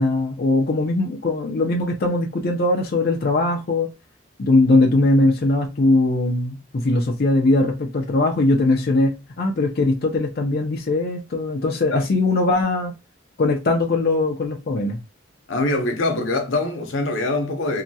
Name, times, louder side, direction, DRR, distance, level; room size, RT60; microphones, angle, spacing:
voice 1, 0.0-3.9 4.4-12.9 13.4-15.0, left 2 dB, 55° left, 0.5 m, -20 dB
voice 2, 15.5-17.8, left 2 dB, 85° left, 0.7 m, -23 dB
2.8 x 2.2 x 2.6 m
head